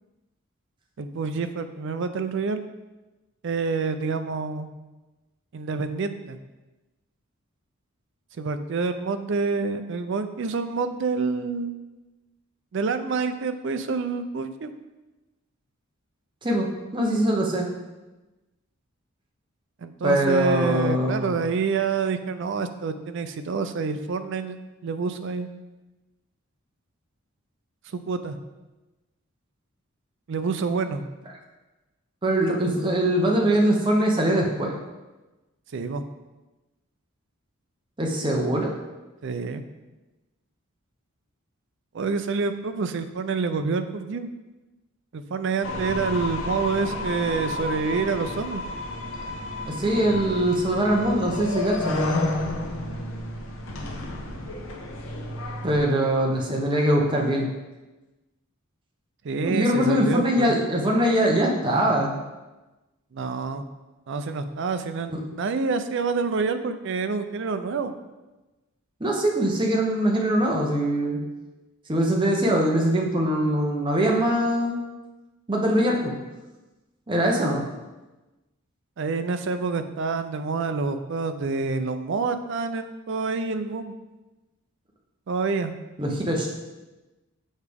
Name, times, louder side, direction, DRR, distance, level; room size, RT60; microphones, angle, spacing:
voice 1, 1.0-2.6 3.4-4.7 5.5-6.4 8.4-11.7 12.7-14.7 19.8-25.5 27.9-28.4 30.3-31.0 35.7-36.0 39.2-39.6 41.9-44.3 45.1-48.6 59.2-60.6 63.1-63.6 64.1-67.9 79.0-83.9 85.3-85.8, right 4 dB, 55° right, 9 dB, 0.4 m, -27 dB
voice 2, 16.9-17.7 20.0-21.3 32.2-34.7 38.0-38.7 49.6-52.0 55.6-57.5 59.4-62.1 65.1-65.2 69.0-71.2 71.9-74.8 75.5-76.1 77.1-77.6 86.0-86.6, right 1 dB, 20° right, -1 dB, 0.8 m, -22 dB
sound 1, 45.6-55.8, left 2 dB, 70° left, 0.9 m, -31 dB
6.4 x 4.8 x 3.5 m, 1.1 s
head